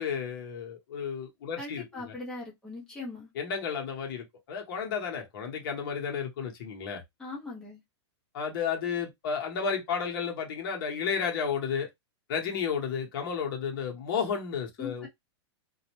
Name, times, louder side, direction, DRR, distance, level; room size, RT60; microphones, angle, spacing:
voice 1, 0.0-2.1 3.3-7.0 8.3-11.9 12.3-15.1, left 6 dB, 50° left, 1.0 m, -32 dB
voice 2, 1.6-3.3 7.2-7.8 14.8-15.1, left 3 dB, 5° left, 0.5 m, -40 dB
2.5 x 2.0 x 3.0 m
supercardioid pair, 160°, 15 cm